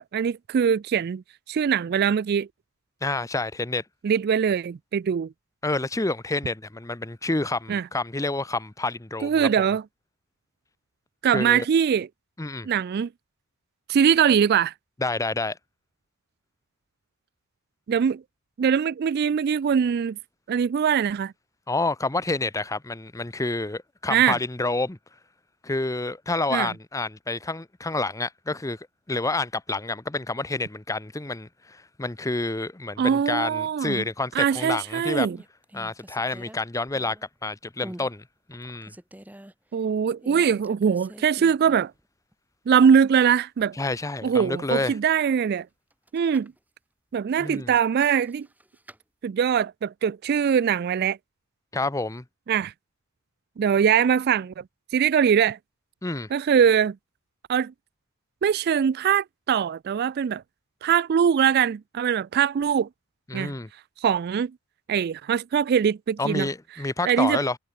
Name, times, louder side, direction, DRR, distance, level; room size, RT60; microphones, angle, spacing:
voice 1, 0.0-2.5 4.0-5.3 7.7-7.8 9.2-9.8 11.2-12.1 12.6-13.1 13.9-14.7 17.9-18.2 18.6-20.2 20.5-21.3 24.1-24.4 26.5-26.7 33.0-34.0 34.4-35.4 39.7-41.9 42.7-43.8 44.2-45.7 46.1-46.5 47.1-48.5 49.2-51.2 52.5-52.7 53.6-54.6 54.9-55.6 56.3-57.0 57.5-57.7 58.4-60.4 60.8-62.9 63.3-63.5 64.0-64.5 64.9-66.5 67.1-67.4, right 7 dB, 45° right, 0.3 m, -22 dB
voice 2, 3.0-3.8 5.6-9.6 11.3-11.6 12.4-12.7 15.0-15.6 21.7-25.0 25.6-35.3 35.7-37.2 37.4-38.2 38.5-38.9 43.8-45.0 47.4-47.7 51.7-52.2 56.0-56.3 63.3-63.7 66.2-67.6, left 2 dB, 15° left, 0.8 m, -28 dB
sound 1, 34.5-34.8 35.2-37.4 37.8-38.1 38.5-39.5 40.2-42.0 42.3-42.4 45.9-46.6 47.5-49.0, equal, 5° right, 1.9 m, -46 dB
head